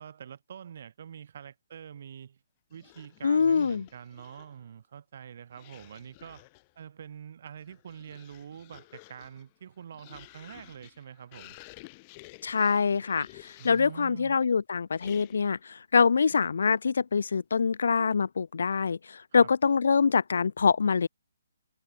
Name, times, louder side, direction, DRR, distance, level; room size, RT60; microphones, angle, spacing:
voice 1, 0.0-2.4 2.7-6.5 6.8-11.6 13.6-14.4 19.3-19.5, right 8 dB, 45° right, 6.9 m, -45 dB
sound 1, 2.7-4.6 5.5-6.7 7.5-14.0 14.9-15.6, left 27 dB, 20° left, 3.8 m, -53 dB
voice 2, 3.2-3.9 12.4-13.3 13.6-15.6 15.9-19.0 19.3-21.1, left 5 dB, 65° left, 0.3 m, -24 dB
hypercardioid pair, 170°, 0 cm